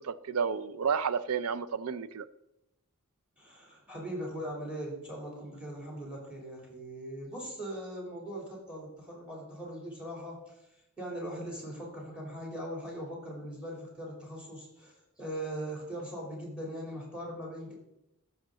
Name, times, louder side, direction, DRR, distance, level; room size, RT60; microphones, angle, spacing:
voice 1, 0.0-2.2, right 6 dB, 75° right, 14 dB, 0.5 m, -31 dB
voice 2, 3.4-10.5 11.0-17.7, right 1 dB, 5° right, -2 dB, 3.2 m, -40 dB
14.0 x 6.4 x 3.9 m, 0.88 s
head